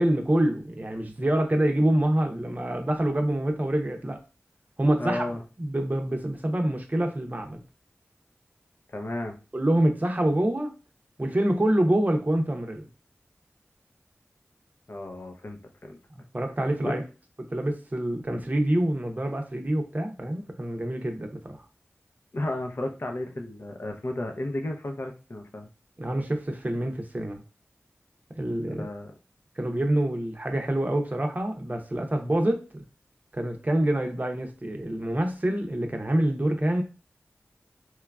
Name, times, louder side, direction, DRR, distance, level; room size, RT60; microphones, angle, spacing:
voice 1, 0.0-4.2 4.8-5.2 5.6-7.6 9.5-10.7 11.2-12.9 16.3-17.0 17.4-21.6 26.0-27.4 28.4-28.9 29.6-32.6 33.3-36.8, right 1 dB, 35° right, 4 dB, 0.6 m, -26 dB
voice 2, 5.0-5.4 8.9-9.4 14.9-16.0 16.8-17.0 22.3-25.7 28.8-29.2, left 1 dB, 50° left, 3 dB, 0.5 m, -33 dB
3.0 x 2.3 x 2.3 m, 0.32 s
cardioid pair, 40°, 5 cm